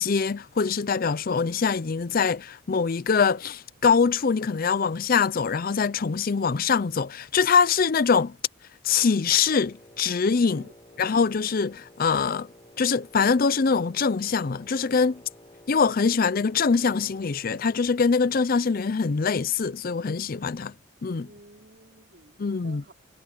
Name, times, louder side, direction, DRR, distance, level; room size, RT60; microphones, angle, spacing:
voice 1, 0.0-8.4 8.8-10.6 11.0-12.5 12.8-15.2 15.7-20.7 21.0-21.3 22.4-22.8, left 5 dB, 45° left, 0.5 m, -23 dB
Wind instrument woodwind instrument, 9.4-18.0, left 1 dB, 25° left, 5.3 m, -52 dB
voice 2, 10.5-11.2 21.2-22.9, right 1 dB, 50° right, 4.2 m, -53 dB
head